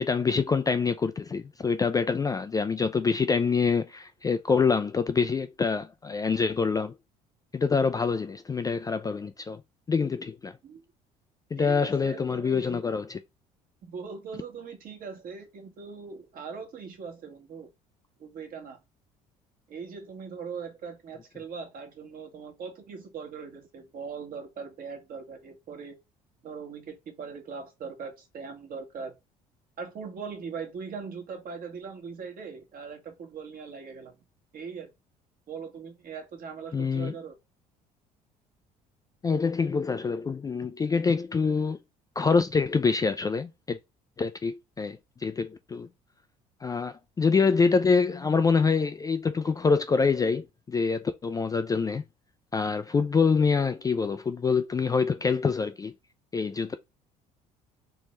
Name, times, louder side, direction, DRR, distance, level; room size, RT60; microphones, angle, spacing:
voice 1, 0.0-7.0 7.5-9.6 9.9-10.5 11.5-13.2 36.7-37.1 39.2-41.8 42.2-43.8 44.2-45.9 46.6-52.0 52.5-55.9 56.3-56.7, left 5 dB, 20° left, 0.4 m, -26 dB
voice 2, 11.6-12.8 13.8-17.7 18.2-18.8 19.7-26.0 26.4-29.1 29.8-34.2 34.5-34.9 35.5-37.3, right 5 dB, 45° right, 1.3 m, -40 dB
3.4 x 3.0 x 3.1 m
figure-of-eight pair, 55°, 20 cm